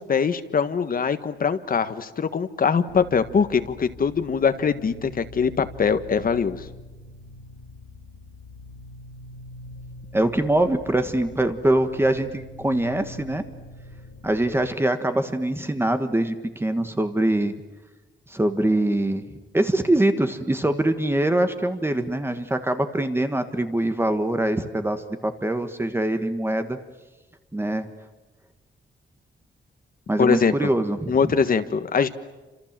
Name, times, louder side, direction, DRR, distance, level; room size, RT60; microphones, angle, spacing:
voice 1, 0.1-6.6 30.2-30.5 31.1-32.1, left 6 dB, 45° left, 10 dB, 1.5 m, -22 dB
sound 1, 2.9-14.7, left 2 dB, 75° left, 6.6 m, -44 dB
voice 2, 10.1-13.4 14.2-17.5 18.3-19.2 19.5-26.8 27.5-27.9 30.1-31.2, right 1 dB, 10° right, 8 dB, 1.5 m, -23 dB
29.5 x 27.0 x 7.5 m, 1.1 s
wide cardioid pair, 180°, 20 cm